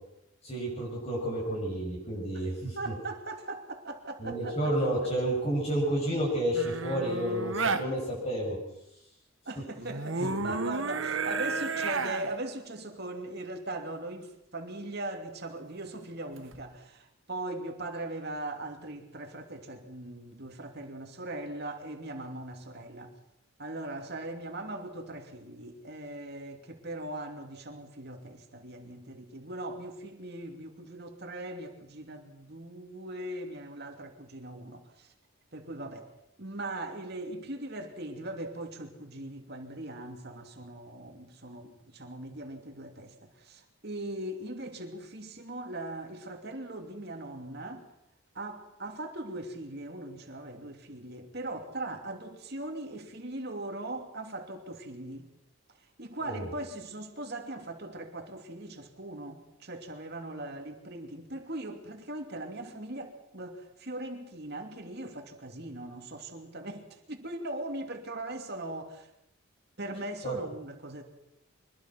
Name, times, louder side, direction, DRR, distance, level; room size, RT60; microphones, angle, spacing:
voice 1, 0.4-2.9 4.2-8.6 10.2-10.5 56.2-56.5 70.2-70.3, right 1 dB, 30° left, 7.3 m, -31 dB
voice 2, 2.7-4.7 5.0-5.1 9.4-23.1 23.6-35.1 35.5-36.1 36.4-47.8 48.3-55.3 56.0-69.1 69.8-71.0, right 1 dB, 50° right, 2.9 m, -40 dB
sound 1, 6.5-7.8 9.8-12.3 16.4-16.6, right 4 dB, 65° right, 1.4 m, -32 dB
24.5 x 21.0 x 6.0 m
head